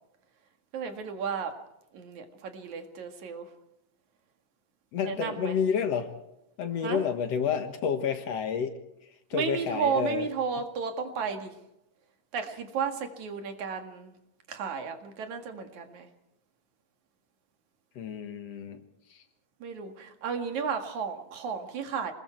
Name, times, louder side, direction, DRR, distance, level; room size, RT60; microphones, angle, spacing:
voice 1, 0.7-1.6 1.9-3.5 5.0-5.6 6.8-7.0 9.3-11.6 12.3-14.1 14.5-16.1 19.6-22.1, right 6 dB, 75° right, 6 dB, 3.4 m, -33 dB
voice 2, 4.9-6.1 6.6-8.8 9.3-10.3 18.0-18.8 19.1-19.2, left 7 dB, 65° left, 7 dB, 2.5 m, -29 dB
27.5 x 21.0 x 4.6 m, 0.88 s
omnidirectional pair, 3.3 m